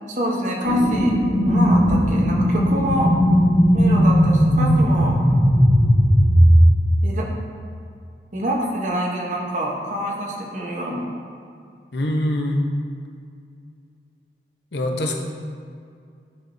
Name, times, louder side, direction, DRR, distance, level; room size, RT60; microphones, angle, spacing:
voice 1, 0.1-1.2 1.5-3.1 3.7-5.2 7.0-7.3 8.3-11.1, right 1 dB, 45° right, -2 dB, 0.9 m, -26 dB
sound 1, 0.6-6.6, equal, 35° left, 1.6 m, -17 dB
voice 2, 11.9-12.6 14.7-15.2, left 1 dB, 80° left, 1 dB, 0.8 m, -23 dB
9.5 x 4.6 x 2.6 m, 2.3 s
head